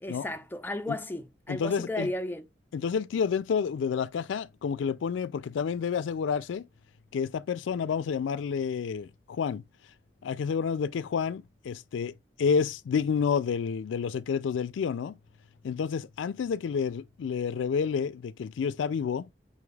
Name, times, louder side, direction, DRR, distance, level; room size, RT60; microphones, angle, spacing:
voice 1, 0.0-2.4, left 1 dB, 10° left, 0.4 m, -34 dB
voice 2, 1.5-2.1 2.7-6.7 7.1-9.6 10.2-12.1 12.4-15.2 15.6-19.3, left 6 dB, 90° left, 0.3 m, -29 dB
5.7 x 2.3 x 3.1 m
head